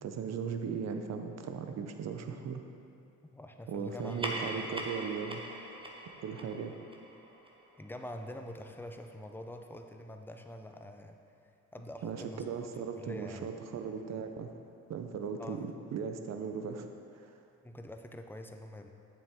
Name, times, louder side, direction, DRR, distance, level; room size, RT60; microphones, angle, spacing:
voice 1, 0.0-2.6 3.7-5.4 6.2-6.7 12.0-14.5 14.9-17.4, right 6 dB, 60° right, 6 dB, 0.7 m, -38 dB
voice 2, 3.3-4.9 7.8-11.2 11.7-12.6 13.0-13.5 15.4-15.7 17.6-18.9, left 1 dB, 5° left, 5 dB, 0.6 m, -45 dB
sound 1, 4.0-8.8, right 1 dB, 15° right, 1.0 m, -42 dB
8.4 x 7.3 x 3.7 m, 2.7 s
cardioid pair, 90°, 30 cm